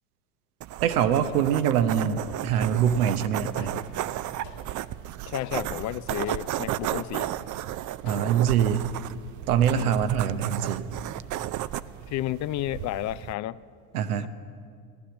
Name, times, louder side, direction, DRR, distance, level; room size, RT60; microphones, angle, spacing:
sound 1, 0.6-13.3, right 13 dB, 45° right, 0.5 m, -34 dB
voice 1, 0.8-3.8 8.0-8.8 9.5-10.8 13.9-14.3, right 9 dB, 85° right, 10 dB, 0.9 m, -24 dB
sound 2, 1.2-1.7 2.6-3.0 3.6-4.0 4.4-4.9 5.4-5.8 6.3-6.7 7.1-7.6 8.1-8.5, left 6 dB, 70° left, 2.1 m, -47 dB
voice 2, 5.3-7.3 9.7-10.0 12.1-13.6 14.2-14.3, left 14 dB, 45° left, 17 dB, 0.4 m, -32 dB
15.5 x 11.0 x 7.0 m, 2.3 s
hypercardioid pair, 75°, 43 cm